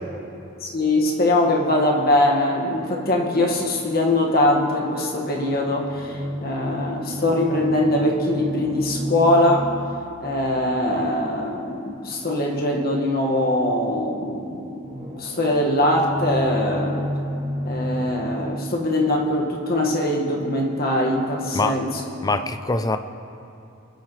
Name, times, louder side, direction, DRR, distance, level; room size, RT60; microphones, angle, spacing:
voice 1, 0.6-9.7 10.2-14.8 15.2-17.1 17.6-21.9, left 1 dB, 45° left, -1 dB, 1.7 m, -22 dB
sound 1, 2.9-4.1 5.2-11.4 14.8-19.0, equal, 25° right, 1.8 m, -32 dB
voice 2, 22.2-23.0, left 3 dB, 20° left, 9 dB, 0.4 m, -23 dB
26.0 x 9.4 x 3.2 m, 2.7 s
head